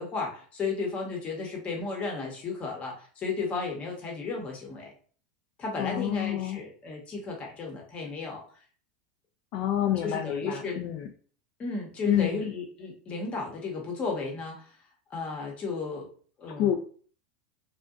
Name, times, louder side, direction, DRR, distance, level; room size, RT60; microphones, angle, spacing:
voice 1, 0.0-4.9 5.6-8.4 10.0-10.8 11.6-14.6 15.1-16.1 16.4-16.7, left 4 dB, 30° left, 0 dB, 0.9 m, -34 dB
voice 2, 5.8-6.6 9.5-11.1 12.0-12.5 16.6-16.7, left 11 dB, 55° left, 4 dB, 0.4 m, -28 dB
2.6 x 2.1 x 2.3 m, 0.43 s
supercardioid pair, 115°, 4 cm